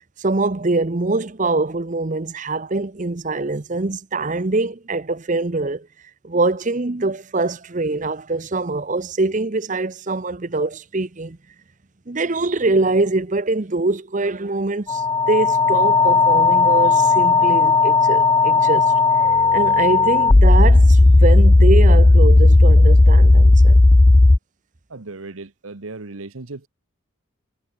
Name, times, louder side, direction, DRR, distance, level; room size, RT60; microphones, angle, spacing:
voice 1, 0.2-5.9 6.2-11.4 12.1-23.8, right 2 dB, 40° right, 0.8 m, -23 dB
sound 1, 14.9-24.4, left 2 dB, 20° left, 0.4 m, -13 dB
voice 2, 24.9-26.7, right 3 dB, 85° right, 1.2 m, -36 dB
head